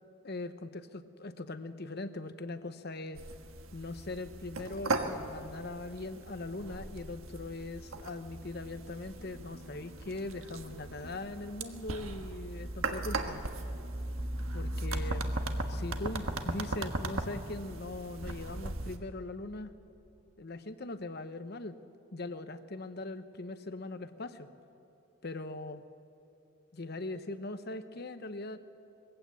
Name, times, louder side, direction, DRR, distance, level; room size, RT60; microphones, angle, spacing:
voice 1, 0.2-3.2 3.7-13.4 14.5-15.2 15.7-19.7 20.4-21.7 22.1-24.5 25.2-25.8 26.7-28.6, left 2 dB, 50° left, 11 dB, 0.9 m, -41 dB
sound 1, 3.2-19.0, right 2 dB, 80° right, 1.4 m, -38 dB
21.5 x 15.5 x 8.4 m, 2.9 s
head